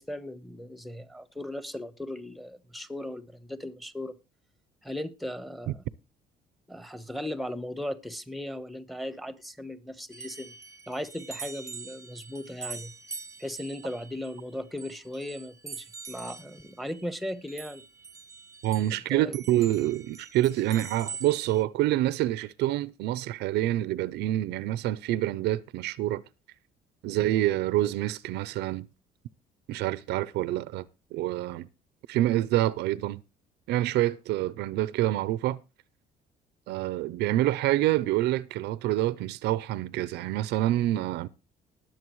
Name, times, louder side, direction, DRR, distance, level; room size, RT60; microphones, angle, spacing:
voice 1, 0.0-4.1 4.8-5.8 6.7-10.5 10.9-12.9 13.4-17.8 19.1-19.3, left 1 dB, ahead, 1.1 m, -37 dB
sound 1, 10.1-19.0 19.3-21.6, right 5 dB, 20° right, 0.8 m, -44 dB
voice 2, 18.6-26.2 27.0-28.9 29.7-31.7 32.1-33.2 33.7-35.6 36.7-41.3, right 14 dB, 80° right, 0.5 m, -27 dB
19.5 x 7.7 x 3.1 m
cardioid pair, 110°, 17 cm